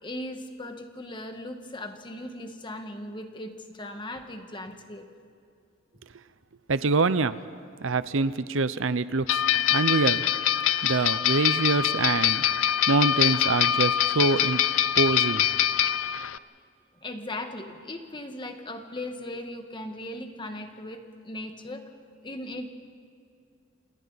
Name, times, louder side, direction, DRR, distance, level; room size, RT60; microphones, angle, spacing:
voice 1, 0.0-5.1 17.0-21.8 22.2-22.7, left 1 dB, 25° left, 5 dB, 1.5 m, -38 dB
voice 2, 6.7-7.4 7.8-9.4 9.7-10.2 10.8-12.4 12.9-14.6 15.0-15.5, right 3 dB, 70° right, 14 dB, 0.7 m, -25 dB
sound 1, 9.3-16.4, left 10 dB, 75° left, 0.5 m, -24 dB
28.5 x 27.0 x 4.1 m, 2.4 s
head